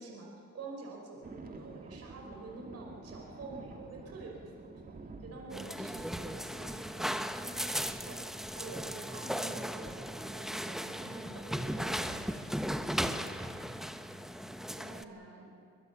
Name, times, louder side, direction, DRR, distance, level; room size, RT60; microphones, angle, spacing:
voice 1, 0.0-4.9 5.2-7.1 7.4-12.4, right 3 dB, 55° right, 0 dB, 5.5 m, -47 dB
sound 1, 1.2-8.5, right 3 dB, 30° right, 2.2 m, -51 dB
voice 2, 2.1-2.7 5.5-6.2 10.8-11.4 13.0-13.4 14.7-15.5, right 2 dB, 70° right, 0 dB, 5.3 m, -52 dB
sound 2, 5.5-15.0, equal, ahead, 1.1 m, -37 dB
23.0 x 21.5 x 7.1 m, 2.2 s
cardioid pair, 90°, 30 cm